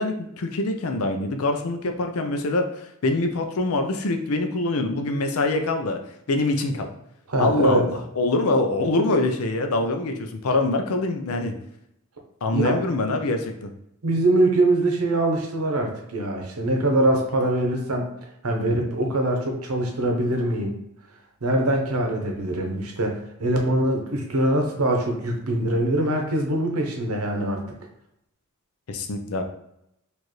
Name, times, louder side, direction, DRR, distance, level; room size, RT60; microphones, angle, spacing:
voice 1, 0.0-6.0 6.3-6.9 7.4-11.5 12.4-13.7 28.9-29.4, left 2 dB, 90° left, 5 dB, 0.6 m, -24 dB
voice 2, 7.3-7.9 12.5-12.8 14.0-18.1 18.4-20.8 21.4-27.8, right 1 dB, 85° right, 2 dB, 0.9 m, -23 dB
4.5 x 2.6 x 3.1 m, 0.81 s
head